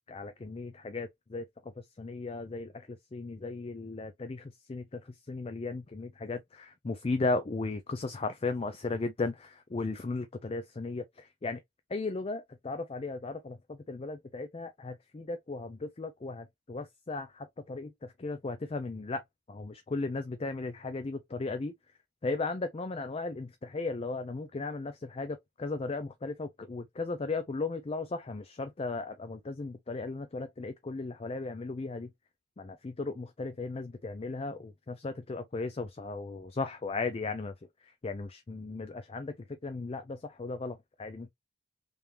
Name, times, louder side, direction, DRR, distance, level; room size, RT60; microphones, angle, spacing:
voice 1, 0.1-11.6 11.9-19.2 19.5-21.7 22.2-32.1 32.6-37.5 37.8-41.3, left 3 dB, 30° left, 0.4 m, -36 dB
3.5 x 2.8 x 3.2 m
head